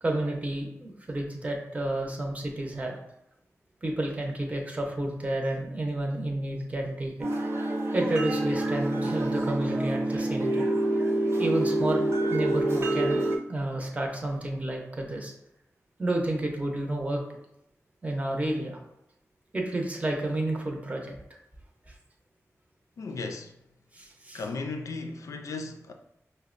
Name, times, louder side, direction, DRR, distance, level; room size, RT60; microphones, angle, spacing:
voice 1, 0.0-3.0 3.8-7.1 7.9-10.7 11.4-12.0 12.3-13.2 13.5-15.3 16.0-17.2 18.0-18.8 19.5-21.1 23.9-24.4, right 1 dB, 25° right, 0.7 m, -30 dB
sound 1, 7.2-13.4, right 1 dB, 55° right, 0.8 m, -27 dB
voice 2, 23.0-23.6 24.3-25.9, left 3 dB, 75° left, 0.4 m, -36 dB
5.1 x 2.1 x 2.5 m
wide cardioid pair, 95°, 6 cm